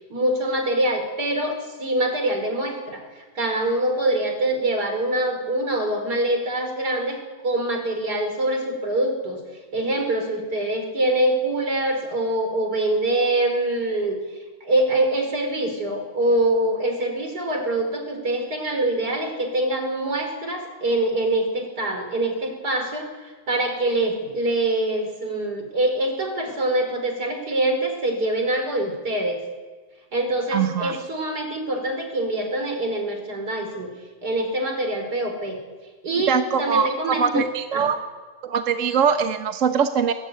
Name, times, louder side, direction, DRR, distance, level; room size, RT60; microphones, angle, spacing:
voice 1, 0.1-3.0 3.4-9.4 9.7-14.2 14.6-29.4 30.1-33.9 34.2-35.6 36.0-37.4 37.7-37.9, right 1 dB, 75° right, 4 dB, 5.3 m, -24 dB
voice 2, 30.5-31.0 36.3-38.0 38.4-40.1, right 7 dB, 55° right, 7 dB, 1.3 m, -22 dB
21.0 x 21.0 x 9.3 m, 1.4 s
omnidirectional pair, 1.8 m